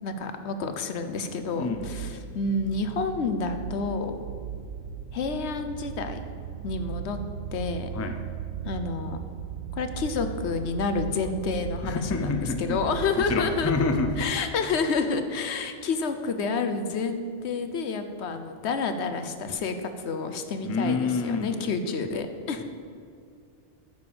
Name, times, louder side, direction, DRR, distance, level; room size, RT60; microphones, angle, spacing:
voice 1, 0.0-4.2 5.1-6.3 6.6-7.2 7.5-7.9 8.6-9.2 9.7-12.3 12.6-13.7 14.2-22.6, left 4 dB, 70° left, 8 dB, 1.0 m, -29 dB
sound 1, 1.0-14.2, right 8 dB, 85° right, 1.0 m, -37 dB
voice 2, 1.6-2.2 7.9-8.2 11.8-12.8 13.2-14.3 20.6-21.6, left 4 dB, 20° left, 6 dB, 0.4 m, -28 dB
9.4 x 5.0 x 6.9 m, 2.3 s
omnidirectional pair, 1.2 m